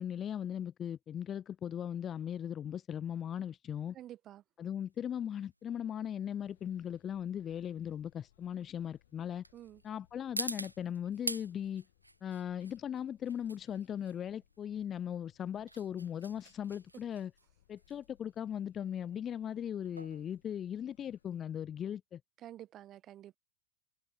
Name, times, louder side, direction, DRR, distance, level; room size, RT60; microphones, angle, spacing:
voice 1, 0.0-4.0 4.6-9.4 9.8-11.8 12.2-17.3 17.7-22.2, left 9 dB, 25° left, 0.6 m, -38 dB
voice 2, 3.9-4.4 9.5-9.8 22.4-23.4, right 12 dB, 30° right, 1.9 m, -49 dB
sound 1, 4.7-21.4, right 1 dB, 85° right, 2.6 m, -47 dB
sound 2, 6.4-21.4, left 14 dB, 55° left, 7.7 m, -71 dB
open air
figure-of-eight pair, 90°, 0 cm